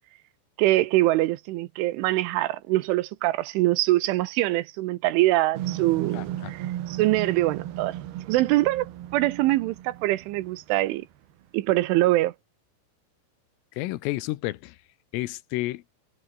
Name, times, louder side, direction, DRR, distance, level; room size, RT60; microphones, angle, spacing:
voice 1, 0.6-8.0 8.3-11.1 11.5-12.3, right 17 dB, 80° right, 3.1 m, -24 dB
sound 1, 5.5-10.8, right 13 dB, 65° right, 3.0 m, -35 dB
voice 2, 6.1-6.5 13.8-14.8 15.1-15.8, left 18 dB, 80° left, 3.6 m, -31 dB
omnidirectional pair, 5.9 m